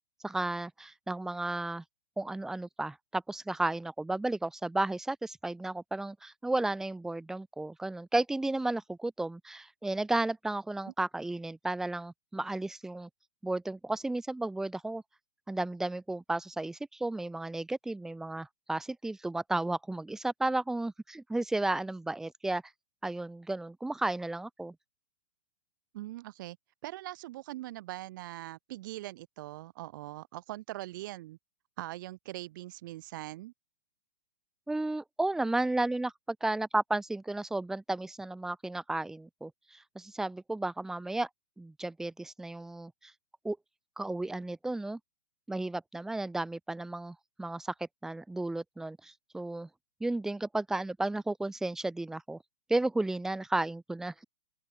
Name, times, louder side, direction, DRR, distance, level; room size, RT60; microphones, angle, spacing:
voice 1, 0.2-1.8 2.2-13.1 13.4-15.0 15.5-22.6 23.0-24.7 34.7-41.3 41.6-43.1 43.4-43.6 44.0-45.0 45.5-49.7 50.0-52.4 52.7-54.2, right 2 dB, ahead, 1.6 m, -33 dB
voice 2, 25.9-26.6 26.8-31.4 31.8-33.5, right 17 dB, 30° right, 1.9 m, -42 dB
open air
hypercardioid pair, 180°, 21 cm